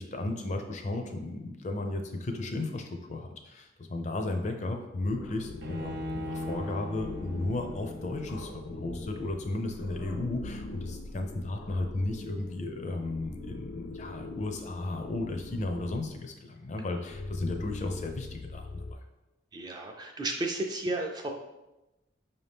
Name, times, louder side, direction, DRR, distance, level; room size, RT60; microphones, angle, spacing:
voice 1, 0.0-19.0, left 2 dB, 40° left, 4 dB, 0.4 m, -34 dB
sound 1, 5.0-16.2 16.8-18.9, left 2 dB, 90° left, 0.5 m, -42 dB
Bowed string instrument, 5.6-8.9, left 2 dB, 65° right, 0.7 m, -38 dB
voice 2, 19.5-21.3, right 2 dB, 20° right, 3 dB, 0.4 m, -33 dB
5.4 x 2.7 x 3.4 m, 0.99 s
head